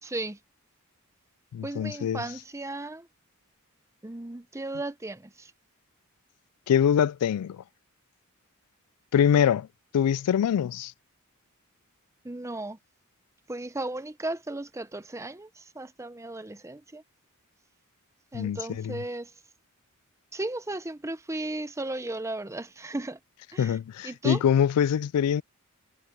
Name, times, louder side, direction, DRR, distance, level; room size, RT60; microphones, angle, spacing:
voice 1, 0.0-0.4 1.6-3.1 4.0-5.5 12.2-12.8 13.5-17.0 18.3-19.3 20.3-23.2 23.5-23.8 24.0-24.4, right 2 dB, 15° right, 0.7 m, -35 dB
voice 2, 1.5-2.2 6.7-7.6 9.1-9.7 9.9-10.9 18.3-19.0 23.6-25.4, left 8 dB, 85° left, 0.3 m, -24 dB
head